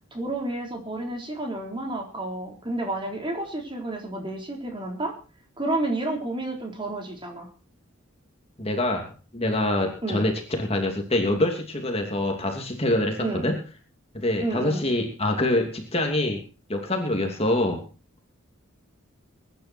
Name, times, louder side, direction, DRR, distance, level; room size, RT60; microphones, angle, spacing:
voice 1, 0.1-5.1 5.6-7.5 10.0-10.3 13.2-13.5 14.4-14.8, right 2 dB, 25° right, 2 dB, 4.1 m, -30 dB
voice 2, 8.6-13.6 14.1-16.4 16.7-17.8, left 1 dB, 30° left, 3 dB, 2.7 m, -25 dB
22.5 x 10.5 x 4.5 m, 0.36 s
head